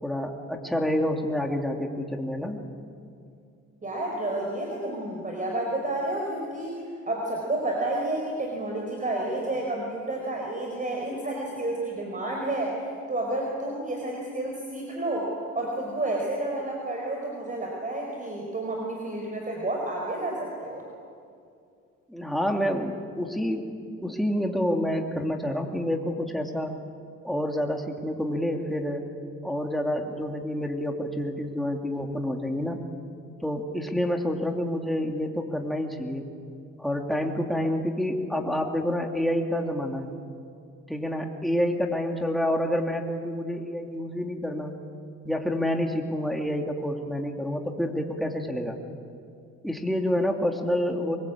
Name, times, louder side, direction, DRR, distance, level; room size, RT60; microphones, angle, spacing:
voice 1, 0.0-2.6 22.1-23.7 24.0-26.8 27.2-29.0 29.4-32.8 33.4-36.3 36.8-40.1 40.9-44.7 45.2-48.8 49.6-51.2, equal, ahead, 2 dB, 2.8 m, -28 dB
voice 2, 3.8-6.8 7.1-20.8, right 1 dB, 25° right, 0 dB, 4.7 m, -30 dB
23.5 x 22.5 x 8.6 m, 2.4 s
cardioid pair, 90°, 30 cm